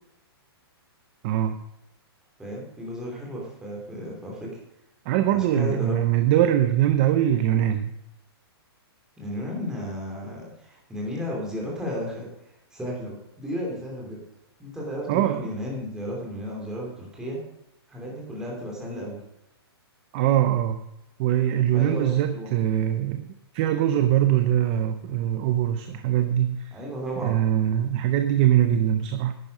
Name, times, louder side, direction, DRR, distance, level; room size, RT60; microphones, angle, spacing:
voice 1, 1.2-1.6 5.1-7.9 15.1-15.4 20.1-20.8 21.2-26.8 27.2-29.3, right 11 dB, 20° right, 9 dB, 0.5 m, -22 dB
voice 2, 2.4-4.5 5.3-6.0 9.2-12.3 12.7-14.2 14.6-17.4 17.9-19.2 21.7-22.5 26.7-27.4, equal, 5° right, -3 dB, 2.9 m, -33 dB
10.5 x 9.3 x 5.3 m, 0.85 s
hypercardioid pair, 170°, 14 cm